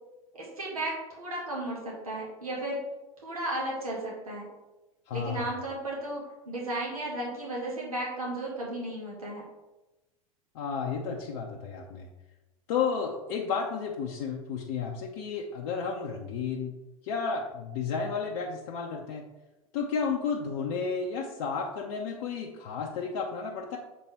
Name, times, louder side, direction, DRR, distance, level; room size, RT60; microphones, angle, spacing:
voice 1, 0.3-2.8 3.2-4.5 5.1-9.4, right 1 dB, 75° right, -4 dB, 2.0 m, -34 dB
voice 2, 5.1-5.5 10.5-12.1 12.7-16.7 17.0-19.2 19.7-23.8, left 5 dB, 50° left, -1 dB, 0.8 m, -32 dB
7.4 x 4.2 x 3.5 m, 1.0 s
figure-of-eight pair, 85°, 19 cm